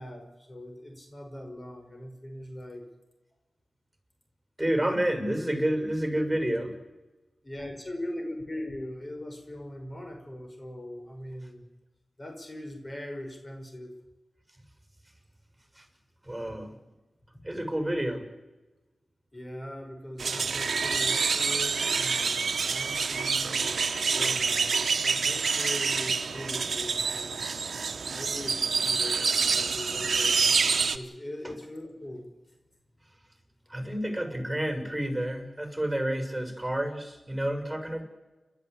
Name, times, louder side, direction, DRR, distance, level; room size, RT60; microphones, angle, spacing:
voice 1, 0.0-2.8 7.4-11.6 12.2-13.9 19.3-23.6 24.1-27.7 28.1-30.5 30.9-32.3, left 1 dB, 35° left, 3 dB, 5.7 m, -40 dB
voice 2, 4.6-6.7 16.3-16.7 17.4-18.2 33.7-38.0, right 1 dB, 10° right, 6 dB, 7.0 m, -29 dB
sound 1, 20.2-31.0, right 5 dB, 75° right, 1.2 m, -27 dB
30.0 x 12.5 x 8.4 m, 1.1 s
cardioid pair, 50°, 0 cm